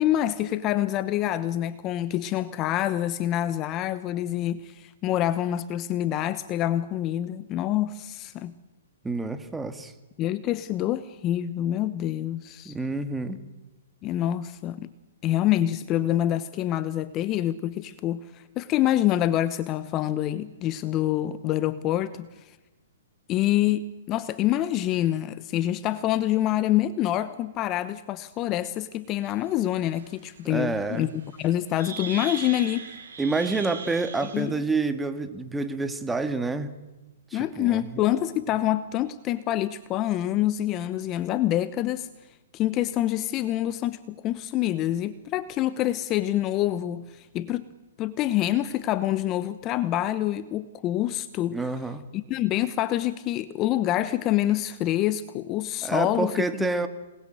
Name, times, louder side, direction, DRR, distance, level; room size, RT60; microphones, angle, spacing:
voice 1, 0.0-8.5 10.2-12.7 14.0-14.9 15.2-22.3 23.3-31.1 31.4-32.9 34.3-34.6 37.3-42.1 42.5-47.6 48.0-51.6 52.1-56.4, left 13 dB, 30° left, 15 dB, 1.0 m, -26 dB
voice 2, 9.0-9.9 12.7-13.4 30.5-31.1 33.2-36.7 37.3-38.0 51.5-52.0 55.8-56.9, right 3 dB, 5° right, 10 dB, 1.8 m, -28 dB
sound 1, 29.2-29.3 29.8-30.0 31.4-31.5 31.8-34.4, right 5 dB, 65° right, 6.4 m, -38 dB
27.0 x 20.5 x 9.1 m, 1.1 s
hypercardioid pair, 130°, 0 cm